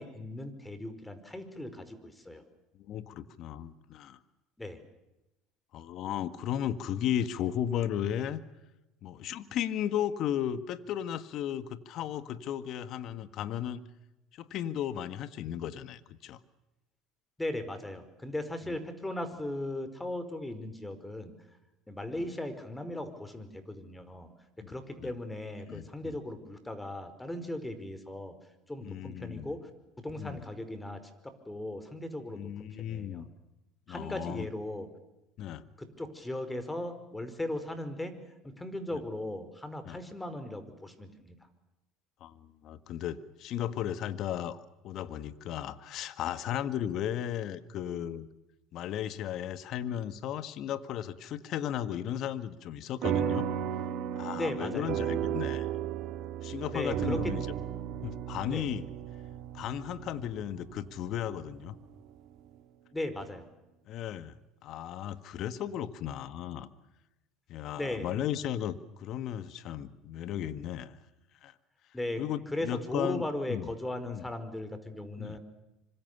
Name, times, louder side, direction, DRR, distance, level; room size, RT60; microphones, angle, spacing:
voice 1, 0.0-2.4 4.6-4.8 17.4-21.3 21.9-24.3 24.7-28.3 28.7-29.7 30.0-33.3 33.9-34.9 35.8-38.1 38.4-41.4 54.3-54.9 56.7-57.3 58.5-58.7 62.9-63.5 67.7-68.1 71.9-72.2 72.5-75.4, left 1 dB, 10° left, 11 dB, 5.1 m, -37 dB
voice 2, 2.8-4.2 5.7-8.4 9.0-13.8 14.3-16.4 18.7-18.8 24.6-25.1 25.7-26.1 28.8-29.5 30.2-30.4 32.3-33.3 33.9-34.5 35.4-35.6 38.9-39.0 39.9-40.0 42.2-48.3 48.7-53.5 54.2-55.7 56.4-57.5 58.0-58.9 59.5-61.8 63.9-64.3 64.6-66.7 67.5-71.0 71.4-71.5 72.2-73.7 74.1-74.3 75.2-75.4, left 10 dB, 60° left, 12 dB, 1.8 m, -35 dB
sound 1, 53.0-61.8, right 9 dB, 60° right, 2.8 m, -34 dB
26.0 x 26.0 x 7.0 m, 0.96 s
hypercardioid pair, 80°, 0 cm